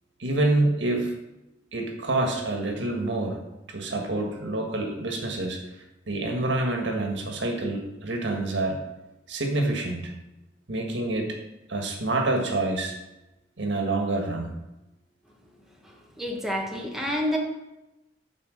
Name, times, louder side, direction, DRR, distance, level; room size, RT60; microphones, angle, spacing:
voice 1, 0.2-1.1 1.7-3.4 3.7-5.6 6.1-8.8 9.3-10.1 10.7-11.4 11.7-12.9 13.6-14.6, right 2 dB, 90° right, 3 dB, 1.5 m, -27 dB
voice 2, 15.8-17.4, equal, ahead, -1 dB, 1.2 m, -29 dB
8.5 x 4.8 x 6.4 m, 0.96 s
head